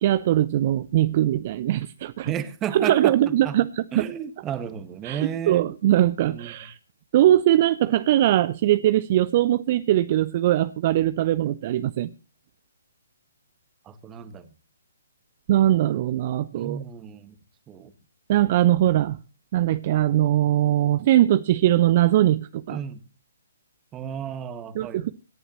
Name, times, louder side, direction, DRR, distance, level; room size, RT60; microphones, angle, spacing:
voice 1, 0.0-2.3 2.7-4.1 5.0-6.8 7.1-12.1 15.5-16.8 18.3-19.2 19.5-22.8 24.7-25.1, right 13 dB, 35° right, 16 dB, 0.7 m, -21 dB
voice 2, 2.2-3.5 3.9-5.7 6.2-6.5 13.8-14.5 16.5-17.4 17.7-17.9 22.7-23.0 23.9-25.1, right 9 dB, 15° right, 12 dB, 1.5 m, -33 dB
26.5 x 11.0 x 3.0 m, 0.33 s
figure-of-eight pair, 130°, 0 cm